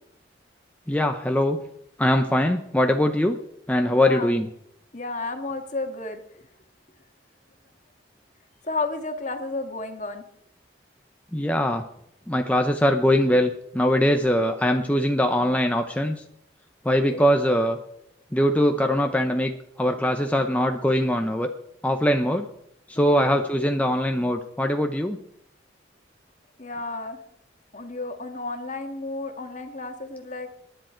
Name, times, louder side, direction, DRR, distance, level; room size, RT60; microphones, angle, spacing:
voice 1, 0.9-1.6 2.0-3.4 3.7-4.5 11.3-11.8 12.3-16.2 16.8-17.8 18.3-19.5 19.8-21.5 21.8-22.5 22.9-25.2, equal, 10° left, 4 dB, 0.7 m, -22 dB
voice 2, 4.0-4.3 4.9-6.5 8.6-10.2 16.9-17.2 23.0-23.4 26.6-27.2 27.7-30.5, left 3 dB, 40° left, 5 dB, 1.8 m, -32 dB
19.5 x 10.5 x 4.5 m, 0.75 s
head